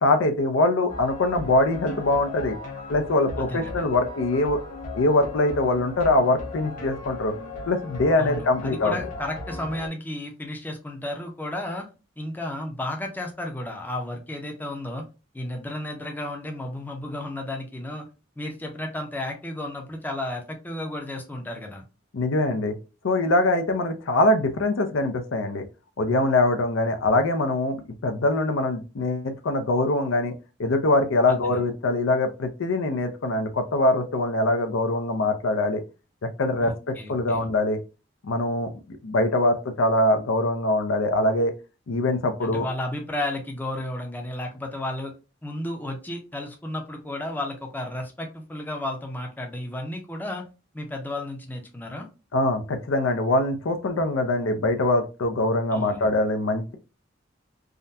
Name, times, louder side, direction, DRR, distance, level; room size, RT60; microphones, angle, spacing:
voice 1, 0.0-2.6 2.9-4.6 4.9-7.3 7.7-9.0 22.1-22.8 23.0-25.6 26.0-27.8 28.0-30.3 30.6-35.8 36.4-37.8 38.2-41.5 41.9-42.7 52.3-56.8, left 2 dB, 85° left, 7 dB, 0.5 m, -23 dB
sound 1, 0.9-9.9, left 2 dB, 40° left, 1.1 m, -37 dB
voice 2, 3.4-3.8 8.2-11.9 12.2-15.1 15.3-18.1 18.4-21.8 31.3-31.6 36.6-37.5 42.4-45.1 45.4-50.4 50.7-52.1 55.7-56.1, left 1 dB, 10° left, 2 dB, 0.5 m, -33 dB
3.6 x 2.1 x 2.6 m, 0.30 s
head